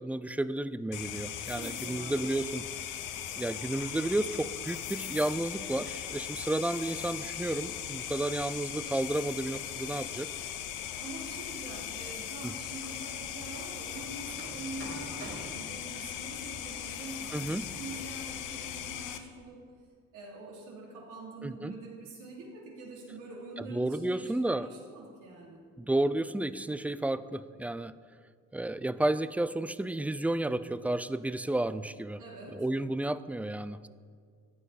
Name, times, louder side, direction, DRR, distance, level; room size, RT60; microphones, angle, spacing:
voice 1, 0.0-2.7 3.3-10.3 12.4-12.5 17.3-17.7 21.4-21.7 23.6-24.7 25.8-27.9 28.5-32.2 32.5-33.9, right 1 dB, 5° right, 14 dB, 0.4 m, -32 dB
sound 1, 0.9-19.2, left 10 dB, 85° left, 0.8 m, -39 dB
voice 2, 1.5-2.3 11.0-19.6 20.1-25.6 32.2-32.6, right 2 dB, 90° right, -3 dB, 3.1 m, -45 dB
Hammer, 12.5-19.4, right 2 dB, 60° right, 3.6 m, -51 dB
14.5 x 9.8 x 4.2 m, 2.2 s
cardioid pair, 90°, 30 cm